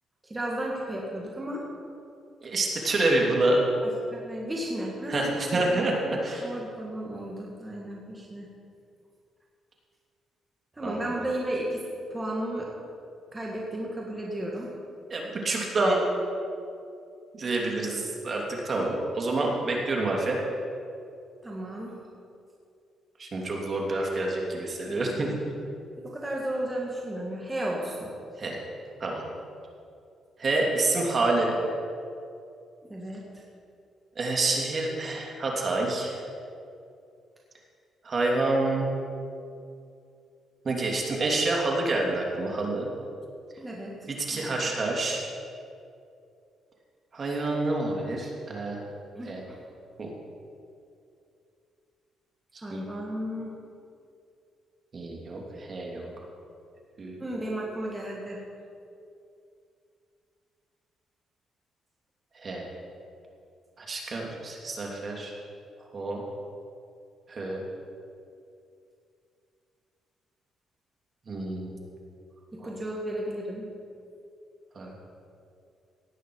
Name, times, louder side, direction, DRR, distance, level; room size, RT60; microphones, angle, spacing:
voice 1, 0.2-1.6 3.8-8.5 10.7-11.8 12.1-12.7 13.3-14.7 21.4-22.0 24.9-25.4 26.0-28.1 32.9-33.4 43.6-44.7 49.2-49.6 52.6-53.6 57.2-58.4 72.5-73.7, right 1 dB, 20° right, -3 dB, 2.0 m, -34 dB
voice 2, 2.4-3.6 5.1-5.9 6.2-6.5 10.8-11.0 15.1-16.0 17.3-20.4 23.2-25.3 28.4-28.6 29.0-29.2 30.4-31.6 34.1-36.2 38.0-38.9 40.6-42.9 44.1-45.2 47.1-48.8 49.2-49.4 50.0-50.1 52.5-52.8 54.9-56.1 57.0-57.2 62.3-62.6 63.8-65.3 65.9-66.2 67.3-67.6 71.3-71.7 72.6-72.7 74.7-74.9, right 2 dB, 40° right, -1 dB, 2.7 m, -28 dB
17.5 x 9.1 x 4.8 m, 2.5 s
cardioid pair, 90°, 0 cm